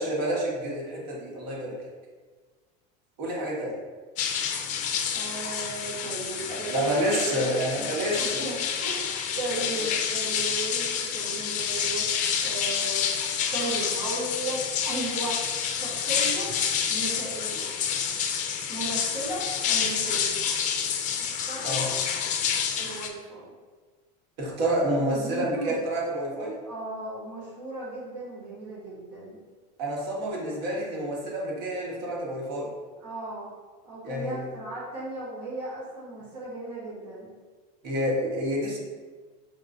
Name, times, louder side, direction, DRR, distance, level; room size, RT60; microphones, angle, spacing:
voice 1, 0.0-1.8 3.2-3.8 6.5-8.4 9.5-9.8 21.6-21.9 24.4-26.6 29.8-32.7 34.0-34.4 37.8-38.8, right 1 dB, 70° right, -4 dB, 1.2 m, -29 dB
sound 1, 4.2-23.1, left 7 dB, 35° left, 0.4 m, -28 dB
voice 2, 5.1-7.6 8.1-12.1 12.4-13.1 13.5-15.4 15.7-16.6 16.9-17.7 18.7-20.4 21.2-21.9 22.8-23.5 24.9-25.8 26.6-29.4 33.0-33.5 33.8-37.3, right 2 dB, 90° right, -6 dB, 1.1 m, -36 dB
5.3 x 2.5 x 2.5 m, 1.4 s
supercardioid pair, 135°, 21 cm